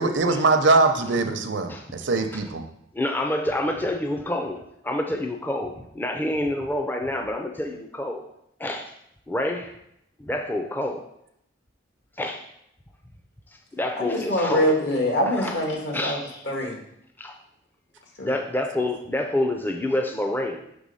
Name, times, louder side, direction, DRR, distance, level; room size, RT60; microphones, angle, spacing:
voice 1, 0.0-2.6, right 3 dB, 75° right, 7 dB, 0.6 m, -22 dB
voice 2, 2.9-8.2 8.6-8.9 9.3-9.7 10.2-11.0 12.2-12.4 13.7-14.7 15.3-15.6 15.9-16.2 17.2-17.3 18.2-20.6, left 1 dB, 10° left, 3 dB, 0.4 m, -27 dB
voice 3, 14.0-16.2 16.4-16.8 18.2-18.3, equal, 70° left, 0 dB, 1.6 m, -24 dB
6.2 x 3.4 x 5.4 m, 0.76 s
head